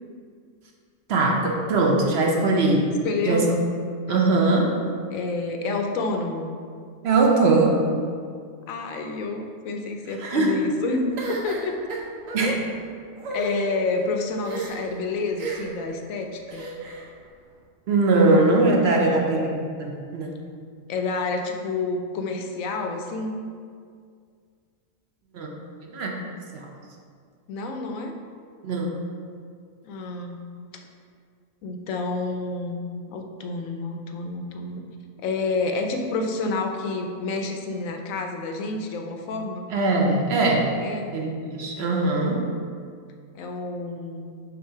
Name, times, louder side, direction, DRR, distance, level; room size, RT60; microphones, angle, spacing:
voice 1, 1.1-2.9 3.3-3.5 4.1-4.8 7.0-8.0 10.2-10.6 12.3-12.6 17.9-20.3 25.3-25.5 25.9-26.2 26.5-26.7 28.6-28.9 39.7-40.8 41.1-42.5, right 2 dB, 55° right, 0 dB, 0.9 m, -21 dB
voice 2, 3.0-3.5 4.1-4.6 5.1-6.5 8.7-11.7 12.4-12.6 13.3-16.7 18.9-19.4 20.9-23.3 27.5-28.1 29.8-30.4 31.6-32.8 33.1-34.8 35.2-39.7 40.8-41.1 43.3-44.4, left 3 dB, 80° left, 4 dB, 1.0 m, -29 dB
sound 1, 11.2-12.5 13.2-13.5 14.4-14.9 15.4-15.8 16.5-17.1, right 3 dB, 75° right, 1.3 m, -33 dB
6.4 x 2.6 x 5.5 m, 2.2 s
omnidirectional pair, 1.4 m